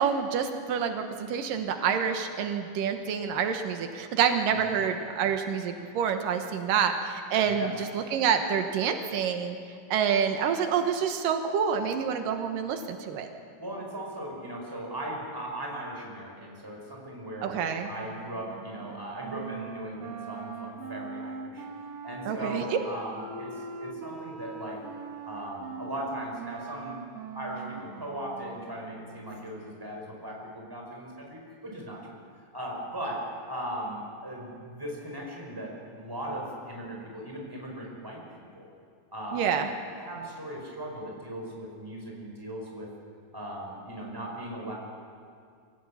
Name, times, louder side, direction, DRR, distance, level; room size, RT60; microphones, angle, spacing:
voice 1, 0.0-9.6 9.9-13.3 17.4-17.9 22.3-22.8 39.3-39.7, right 7 dB, 90° right, 6 dB, 2.9 m, -27 dB
voice 2, 4.5-4.8 7.5-7.8 13.6-21.7 22.0-24.8 25.2-27.0 27.3-32.2 32.5-38.2 38.5-38.7 39.1-39.5 39.9-42.9 43.3-44.7, right 1 dB, 5° right, -1 dB, 4.5 m, -38 dB
Wind instrument woodwind instrument, 17.7-29.7, right 4 dB, 50° right, 2.3 m, -41 dB
25.0 x 16.5 x 8.5 m, 2.3 s
omnidirectional pair, 3.8 m